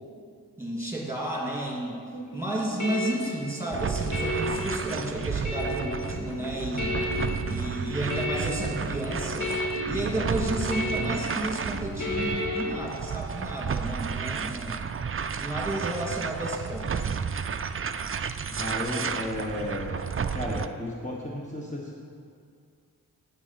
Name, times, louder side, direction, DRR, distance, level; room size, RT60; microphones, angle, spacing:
voice 1, 0.6-2.0 2.3-7.0 7.5-9.5 9.9-14.8 15.4-17.1, right 1 dB, 5° right, -3 dB, 2.5 m, -32 dB
sound 1, 2.1-12.7, left 1 dB, 50° left, 2.2 m, -33 dB
sound 2, 3.7-20.7, right 6 dB, 35° right, 0.4 m, -32 dB
voice 2, 18.5-20.0 20.3-21.9, left 1 dB, 20° left, -4 dB, 1.3 m, -33 dB
9.8 x 8.7 x 5.8 m, 2.3 s
wide cardioid pair, 80°, 37 cm